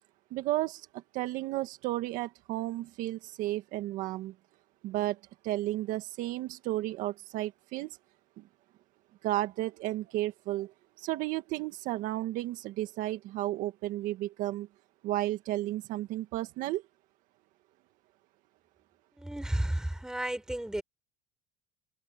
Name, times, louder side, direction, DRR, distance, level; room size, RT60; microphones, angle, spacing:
voice 1, 0.3-4.3 4.8-5.2 5.4-8.0 8.4-8.5 9.2-14.7 15.0-16.8, right 16 dB, 65° right, 1.7 m, -33 dB
voice 2, 19.2-20.8, right 1 dB, 5° right, 5.1 m, -32 dB
cardioid pair, 120°, 15 cm